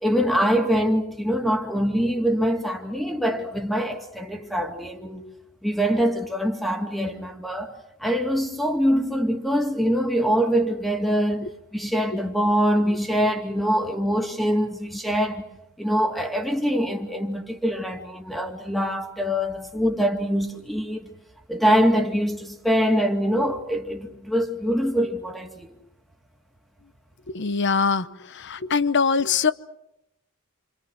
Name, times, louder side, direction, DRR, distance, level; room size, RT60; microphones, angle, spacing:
voice 1, 0.0-5.2 5.6-15.4 15.8-21.1 21.5-25.8, equal, ahead, 2.4 m, -24 dB
voice 2, 27.3-28.0 28.5-29.5, left 5 dB, 60° left, 0.9 m, -22 dB
28.5 x 26.5 x 6.4 m
head